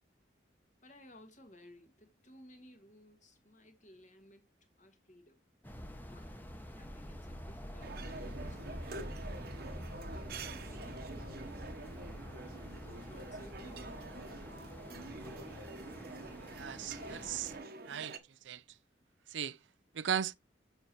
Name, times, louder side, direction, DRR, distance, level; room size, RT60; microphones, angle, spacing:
voice 1, 0.8-4.5 4.8-5.4 6.1-6.5 6.8-9.2 10.1-11.7 12.6-14.2, equal, 45° left, 1.8 m, -58 dB
sound 1, 5.6-17.6, equal, 10° left, 1.0 m, -46 dB
sound 2, 7.8-18.2, right 3 dB, 55° right, 1.0 m, -47 dB
voice 2, 16.5-17.5 17.9-18.2 18.4-18.6 19.3-19.6 19.9-20.3, right 9 dB, 90° right, 0.5 m, -36 dB
7.1 x 6.8 x 3.0 m
head